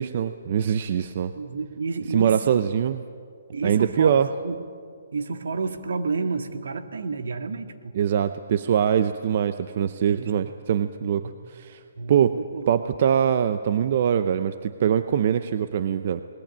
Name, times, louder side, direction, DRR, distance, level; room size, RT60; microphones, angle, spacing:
voice 1, 0.0-1.3 2.1-3.0 3.6-4.3 8.0-11.8 12.1-12.4 12.7-16.2, right 8 dB, 45° right, 11 dB, 0.7 m, -23 dB
voice 2, 1.4-2.6 3.5-4.2 4.4-4.6 5.1-7.9 10.1-10.3 11.2-11.4 11.9-12.7, right 4 dB, 75° right, 7 dB, 1.9 m, -30 dB
20.5 x 19.5 x 8.9 m, 2.2 s
hypercardioid pair, 155°, 0 cm